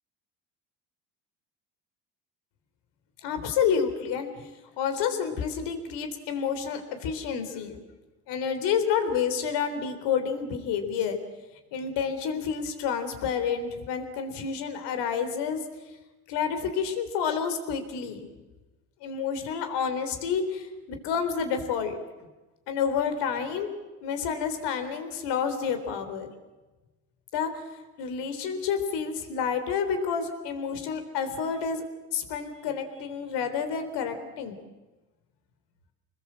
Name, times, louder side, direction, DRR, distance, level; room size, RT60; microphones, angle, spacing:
voice 1, 3.2-4.5 4.8-7.8 8.3-11.2 11.7-15.6 16.3-18.3 19.0-22.0 22.7-23.7 24.0-26.3 27.3-27.6 28.0-31.8 32.1-34.6, left 7 dB, 70° left, 7 dB, 4.0 m, -29 dB
27.0 x 20.5 x 7.7 m, 1.2 s
supercardioid pair, 85°, 42 cm